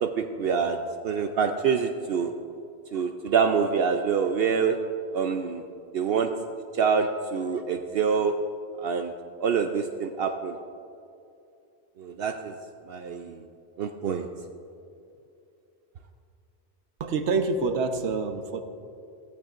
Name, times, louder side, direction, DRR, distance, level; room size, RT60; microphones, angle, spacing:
voice 1, 0.0-0.8 1.0-2.3 2.9-4.8 5.1-5.6 5.9-6.3 6.7-8.3 8.8-9.1 9.4-10.6 12.0-12.6 12.9-13.4 13.8-14.3, right 6 dB, 65° right, 5 dB, 0.8 m, -26 dB
voice 2, 17.0-18.6, right 4 dB, 90° right, 7 dB, 1.1 m, -26 dB
16.0 x 14.5 x 2.5 m, 2.6 s
omnidirectional pair, 1.1 m